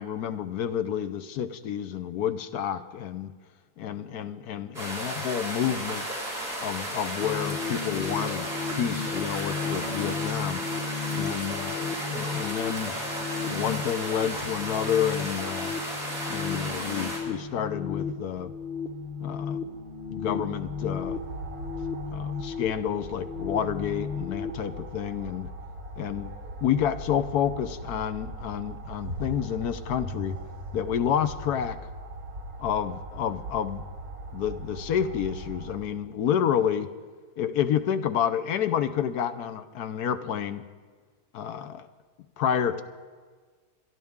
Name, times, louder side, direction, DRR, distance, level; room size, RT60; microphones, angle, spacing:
voice 1, 0.0-3.3 3.8-6.1 6.6-10.6 11.1-12.9 13.4-15.7 16.3-18.5 19.2-19.7 20.1-21.2 22.1-25.5 26.0-26.3 26.6-30.4 30.7-31.8 32.6-33.8 34.3-36.9 37.4-40.6 41.3-41.9 42.4-42.8, left 9 dB, 75° left, 11 dB, 1.3 m, -29 dB
sound 1, 4.7-17.2, right 1 dB, 35° right, 5.8 m, -34 dB
sound 2, 7.2-24.5, left 6 dB, 40° left, 1.0 m, -34 dB
sound 3, 16.3-35.8, right 1 dB, 65° right, 2.3 m, -41 dB
27.0 x 11.0 x 3.6 m, 1.5 s
omnidirectional pair, 1.7 m